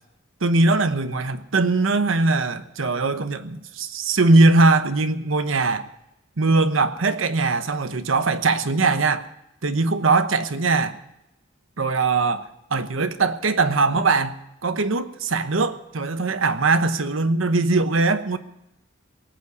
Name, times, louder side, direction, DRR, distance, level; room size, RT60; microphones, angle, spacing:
voice 1, 0.4-5.9 6.4-9.3 9.6-11.0 11.8-18.4, right 3 dB, 85° right, 1.0 m, -21 dB
19.0 x 8.5 x 8.2 m
head